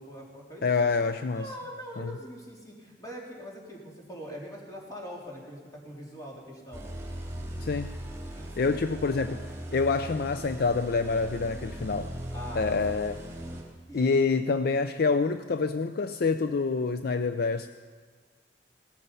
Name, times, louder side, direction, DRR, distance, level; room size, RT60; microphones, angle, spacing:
voice 1, 0.0-0.7 1.3-6.9 8.3-8.8 12.3-13.0 13.2-13.4 13.9-14.2, equal, 20° left, -3 dB, 3.7 m, -43 dB
voice 2, 0.6-1.5 2.0-2.1 7.6-8.0 8.6-12.1 12.5-13.2 13.9-17.7, left 4 dB, 60° left, 10 dB, 0.5 m, -27 dB
sound 1, 6.7-13.6, right 1 dB, 15° right, 3.3 m, -39 dB
18.0 x 13.5 x 5.5 m, 1.5 s
head